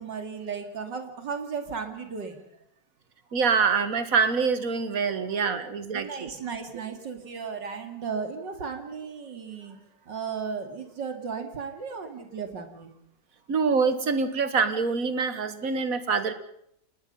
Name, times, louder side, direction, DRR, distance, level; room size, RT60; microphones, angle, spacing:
voice 1, 0.0-2.4 5.4-5.5 5.9-12.9, right 5 dB, 90° right, 6 dB, 3.1 m, -35 dB
voice 2, 3.3-6.3 13.5-16.3, right 5 dB, 55° right, 11 dB, 1.9 m, -25 dB
28.5 x 19.5 x 5.6 m, 0.73 s
omnidirectional pair, 1.9 m